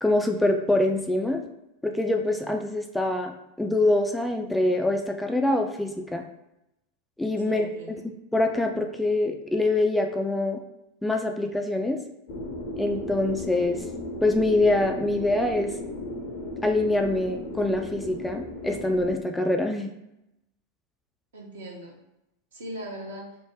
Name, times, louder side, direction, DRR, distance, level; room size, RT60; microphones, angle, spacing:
voice 1, 0.0-1.4 1.8-6.2 7.2-7.7 8.3-10.6 11.0-12.0 12.8-13.8 14.2-15.7 16.6-19.9, left 2 dB, 5° left, 3 dB, 0.3 m, -24 dB
voice 2, 7.4-8.0 21.3-21.9 22.5-23.3, right 1 dB, 65° right, -2 dB, 0.9 m, -39 dB
sound 1, 12.3-19.1, left 2 dB, 50° left, 0.6 m, -35 dB
3.1 x 2.1 x 3.4 m, 0.88 s
figure-of-eight pair, 85°, 0 cm